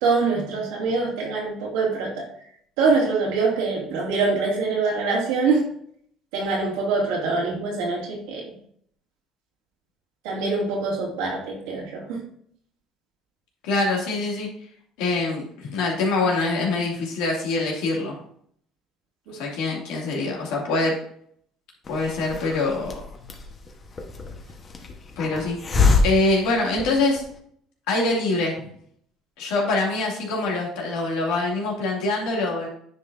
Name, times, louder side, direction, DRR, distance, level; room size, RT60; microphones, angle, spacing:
voice 1, 0.0-2.3 2.8-5.7 6.3-8.5 10.2-12.2 19.3-19.4, right 4 dB, 90° right, -2 dB, 2.5 m, -24 dB
voice 2, 13.6-14.5 15.0-18.2 19.3-21.0 21.9-22.9 25.2-25.6 26.0-27.2 27.9-28.5 29.4-32.7, left 3 dB, 85° left, -2 dB, 2.5 m, -24 dB
Hiss, 21.8-27.3, left 4 dB, 35° left, 1.2 m, -26 dB
9.7 x 5.3 x 2.7 m, 0.65 s
cardioid pair, 105°, 0 cm